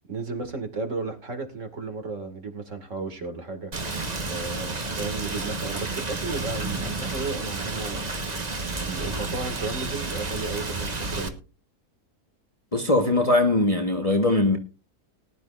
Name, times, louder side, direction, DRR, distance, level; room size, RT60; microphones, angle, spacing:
voice 1, 0.1-3.7 4.3-8.0 8.8-11.3, right 4 dB, 55° right, 2.5 m, -34 dB
Rain, 3.7-11.3, right 3 dB, 30° right, 1.3 m, -31 dB
voice 2, 12.7-14.6, left 2 dB, 25° left, 1.2 m, -21 dB
19.5 x 10.5 x 2.5 m
omnidirectional pair, 1.6 m